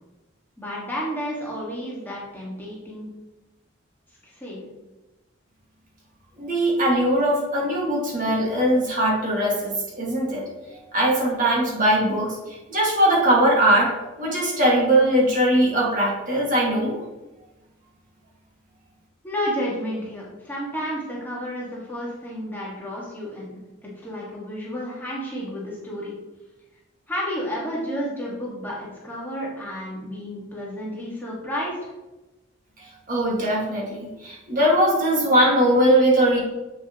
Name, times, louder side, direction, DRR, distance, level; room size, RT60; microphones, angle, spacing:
voice 1, 0.6-3.1 4.2-4.7 19.2-26.1 27.1-31.9, equal, 10° left, -6 dB, 1.7 m, -31 dB
voice 2, 6.4-10.4 10.9-17.0 32.8-36.4, right 1 dB, 40° right, -4 dB, 2.0 m, -20 dB
7.9 x 6.9 x 3.0 m, 1.1 s
head